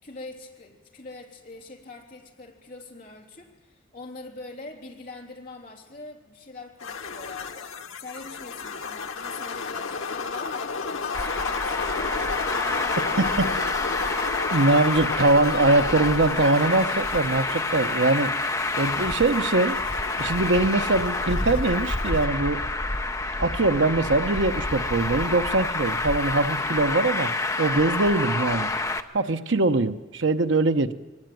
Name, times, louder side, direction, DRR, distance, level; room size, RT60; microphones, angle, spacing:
voice 1, 0.0-7.7 8.0-12.2 12.5-14.1, left 3 dB, 40° left, 0 dB, 3.3 m, -43 dB
sound 1, 6.8-22.3, left 4 dB, 90° left, 1.2 m, -33 dB
Traffic noise roadway noise, 11.1-29.0, left 2 dB, 15° left, 0.8 m, -28 dB
sound 2, 12.2-17.8, equal, 35° right, 4.5 m, -52 dB
voice 2, 14.5-18.3 18.7-19.8 20.2-22.6 23.4-27.3 27.6-28.7 29.1-30.9, right 2 dB, 70° right, 9 dB, 0.9 m, -22 dB
22.5 x 18.5 x 9.2 m, 1.3 s
head